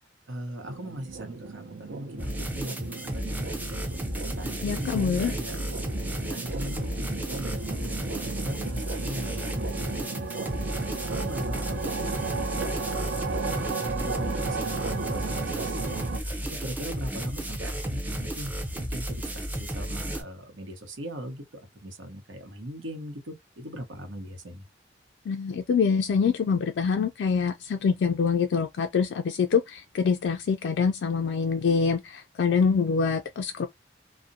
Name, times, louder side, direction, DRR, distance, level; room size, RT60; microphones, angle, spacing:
voice 1, 0.3-4.0 4.4-5.7 6.2-10.7 11.1-18.5 18.7-24.6, right 1 dB, 85° right, 0.9 m, -40 dB
sound 1, 0.6-16.2, right 4 dB, 65° right, 0.5 m, -35 dB
sound 2, 2.2-20.2, equal, 10° right, 0.5 m, -33 dB
voice 2, 4.6-5.3 25.3-33.7, left 5 dB, 65° left, 0.3 m, -25 dB
2.4 x 2.0 x 2.7 m
head